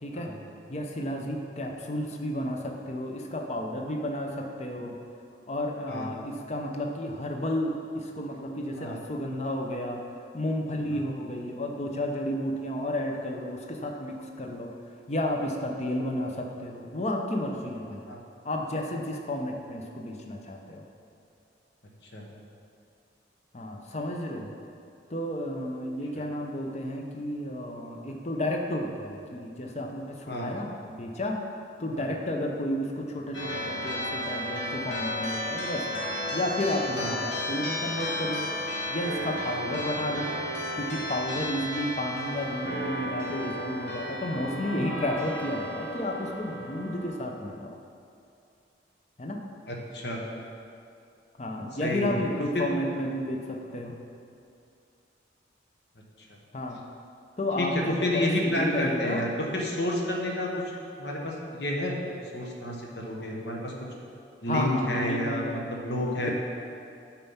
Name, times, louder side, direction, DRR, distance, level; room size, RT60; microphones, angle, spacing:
voice 1, 0.0-0.3 0.7-5.0 5.5-10.0 10.3-14.7 15.1-18.0 18.4-20.8 23.5-24.5 25.1-31.4 31.8-36.0 36.3-38.5 38.9-40.3 40.8-47.7 49.2-49.4 51.4-53.9 56.5-56.8 57.4-59.2 64.5-65.6 66.1-66.3, left 1 dB, 35° left, 2 dB, 0.7 m, -32 dB
sound 1, 33.3-47.1, left 1 dB, 85° left, 1.7 m, -33 dB
voice 2, 49.7-50.2 51.8-52.2 52.5-52.7 57.6-60.5 61.0-62.0 62.3-63.7 64.4-66.3, left 1 dB, 65° left, -1 dB, 1.2 m, -30 dB
9.0 x 4.5 x 5.6 m, 2.5 s
head